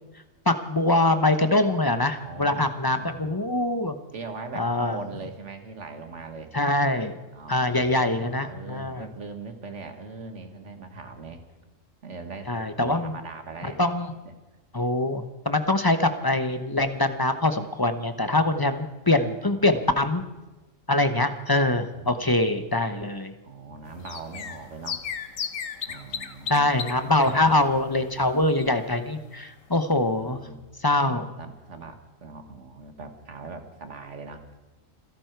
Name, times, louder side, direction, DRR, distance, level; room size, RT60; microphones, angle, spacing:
voice 1, 0.5-4.0 4.6-5.0 6.5-7.1 7.5-9.1 12.5-13.1 13.6-14.1 14.7-20.2 20.9-23.3 26.5-30.4 30.8-31.3, left 2 dB, 20° left, 9 dB, 0.8 m, -24 dB
voice 2, 2.2-3.4 4.1-6.5 7.3-11.4 12.0-13.8 18.5-18.9 19.1-19.9 21.7-22.4 23.4-25.1 25.9-26.7 27.2-27.6 30.2-30.6 31.4-34.4, right 4 dB, 65° right, 7 dB, 1.9 m, -41 dB
sound 1, 23.9-29.1 29.3-29.4 29.7-29.8, left 7 dB, 75° left, 1.4 m, -36 dB
27.0 x 11.5 x 4.6 m, 1.1 s
omnidirectional pair, 1.4 m